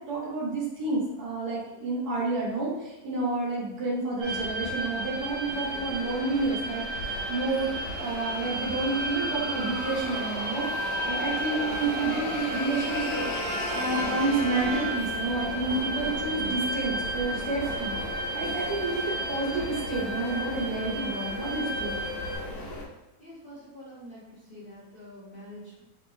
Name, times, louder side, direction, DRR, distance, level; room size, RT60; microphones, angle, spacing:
voice 1, 0.0-10.7 11.1-18.0 18.3-22.0, right 3 dB, 75° right, -4 dB, 1.4 m, -30 dB
sound 1, 4.2-22.8, left 2 dB, 80° left, 1.5 m, -36 dB
sound 2, 4.2-22.4, right 2 dB, 40° right, 1.1 m, -34 dB
Brass instrument, 12.9-15.5, right 2 dB, 20° left, 0.8 m, -36 dB
voice 2, 23.2-25.8, equal, 40° left, -8 dB, 1.1 m, -46 dB
3.6 x 3.6 x 2.6 m, 1.0 s
omnidirectional pair, 1.7 m